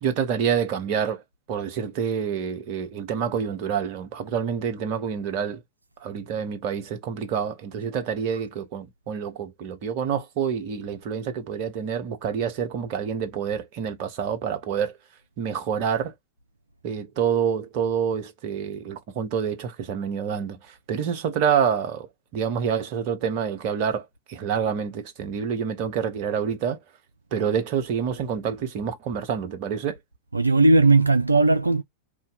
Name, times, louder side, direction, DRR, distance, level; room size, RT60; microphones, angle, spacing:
voice 1, 0.0-1.2 1.5-5.6 6.0-14.9 15.4-16.1 16.8-20.6 20.9-22.1 22.3-26.8 27.3-30.0, right 7 dB, 45° right, 0.9 m, -27 dB
voice 2, 30.3-31.8, right 2 dB, 85° right, 0.3 m, -17 dB
2.6 x 2.6 x 4.1 m
figure-of-eight pair, 95°, 0 cm